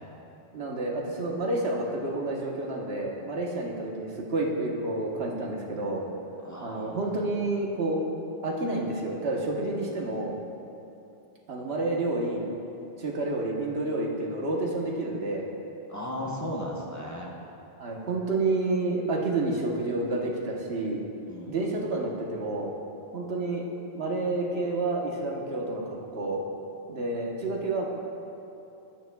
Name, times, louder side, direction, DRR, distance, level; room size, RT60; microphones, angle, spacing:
voice 1, 0.5-6.0 6.6-8.0 8.4-10.3 11.5-12.5 13.0-15.5 17.8-21.0 21.5-22.7 23.1-23.6 23.9-25.8 26.1-26.4 26.9-27.9, right 2 dB, 85° right, -2 dB, 1.4 m, -29 dB
voice 2, 6.4-7.3 15.9-17.3 21.3-21.6, equal, 20° left, -4 dB, 0.9 m, -36 dB
12.5 x 8.9 x 2.3 m, 2.9 s
omnidirectional pair, 1.0 m